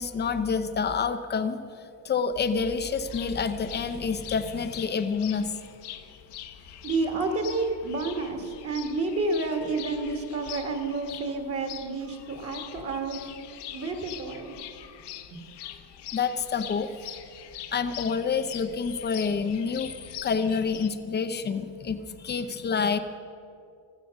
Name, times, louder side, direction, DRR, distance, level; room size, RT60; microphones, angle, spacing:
voice 1, 0.0-1.6 2.0-5.5 16.1-16.9 17.7-19.9 20.2-23.0, left 5 dB, 25° left, 9 dB, 0.6 m, -28 dB
sound 1, 2.6-20.9, left 11 dB, 60° left, 1.0 m, -43 dB
voice 2, 6.8-13.2 13.7-14.6 15.3-15.4, right 3 dB, 30° right, 4 dB, 1.5 m, -30 dB
16.0 x 13.5 x 6.3 m, 2.4 s
cardioid pair, 160°, 46 cm